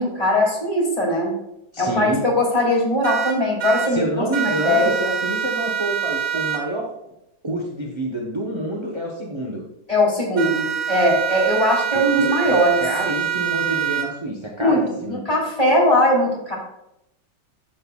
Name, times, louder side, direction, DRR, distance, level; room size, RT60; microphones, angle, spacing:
voice 1, 0.0-1.3 1.8-5.0 9.9-12.8 14.6-14.8 15.1-16.6, left 1 dB, 15° left, -4 dB, 2.6 m, -20 dB
voice 2, 1.7-2.2 3.9-6.9 7.4-9.6 11.9-15.2, right 1 dB, 25° right, -1 dB, 0.6 m, -27 dB
sound 1, 3.0-3.9 4.3-6.6 10.4-14.1, right 9 dB, 80° right, 2.1 m, -25 dB
11.0 x 7.7 x 2.3 m, 0.84 s
omnidirectional pair, 2.2 m